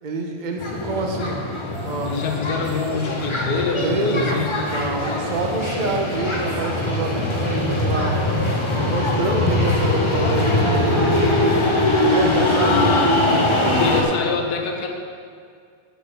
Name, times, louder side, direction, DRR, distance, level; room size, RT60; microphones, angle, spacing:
voice 1, 0.0-1.4 1.8-2.4 3.8-8.2 8.7-11.1 12.0-12.9, right 3 dB, 35° right, 2 dB, 0.8 m, -27 dB
sound 1, 0.6-14.0, left 1 dB, 30° left, 0.5 m, -21 dB
voice 2, 2.0-4.5 12.5-13.2 13.7-14.9, left 5 dB, 55° left, 2 dB, 1.4 m, -25 dB
7.8 x 6.8 x 6.7 m, 2.2 s
omnidirectional pair, 2.2 m